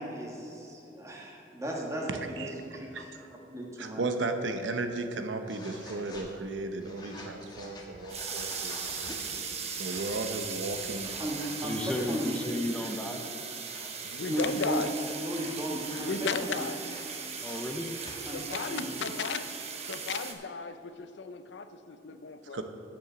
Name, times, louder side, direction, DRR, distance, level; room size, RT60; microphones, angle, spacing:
voice 1, 0.0-3.1 3.5-4.0 11.2-12.3 14.2-14.8 15.2-16.1 16.4-16.7 18.2-19.0, right 1 dB, 15° right, -2 dB, 1.4 m, -35 dB
voice 2, 2.9-3.3 3.8-9.1 9.8-11.1 22.5-22.6, right 2 dB, 90° right, 6 dB, 0.8 m, -35 dB
sound 1, 5.4-6.3 6.8-9.2 9.7-10.2 10.6-11.5 11.9-12.3 12.7-12.9 13.6-14.5 15.2-16.1 16.8-18.3, left 2 dB, 25° left, 1.2 m, -48 dB
sound 2, 8.1-20.3, right 6 dB, 35° right, 0.8 m, -38 dB
voice 3, 11.6-13.2 17.4-17.9, left 1 dB, 5° left, 3 dB, 0.6 m, -33 dB
voice 4, 14.0-14.9 16.0-16.8 18.3-19.5 19.8-22.6, left 5 dB, 70° left, 11 dB, 0.5 m, -35 dB
8.0 x 7.0 x 7.0 m, 2.9 s
head